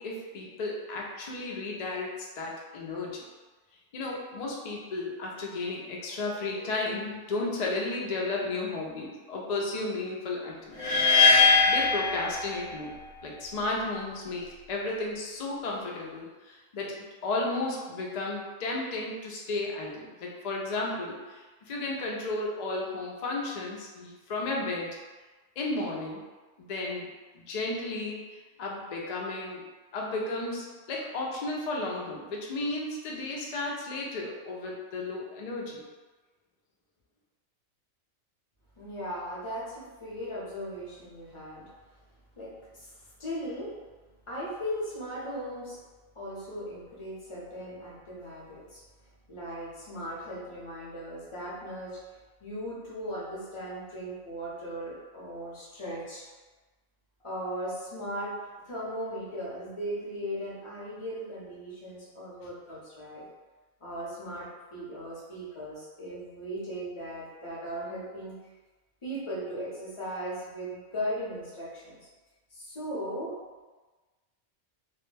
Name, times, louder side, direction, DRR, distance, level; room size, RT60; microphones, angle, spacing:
voice 1, 0.0-3.3 3.9-11.0 11.7-17.0 17.2-25.0 25.6-26.2 26.6-27.1 27.3-29.6 29.9-35.8, left 2 dB, 85° left, -2 dB, 0.3 m, -33 dB
sound 1, 10.8-12.9, left 4 dB, 70° left, 0.8 m, -21 dB
voice 2, 38.8-41.7 42.4-43.7 44.3-45.8 46.1-48.8 49.3-56.3 57.2-58.3 58.6-63.2 63.8-68.4 69.0-72.0 72.5-73.4, equal, 35° left, -7 dB, 0.6 m, -38 dB
2.3 x 2.1 x 3.1 m, 1.3 s
omnidirectional pair, 1.3 m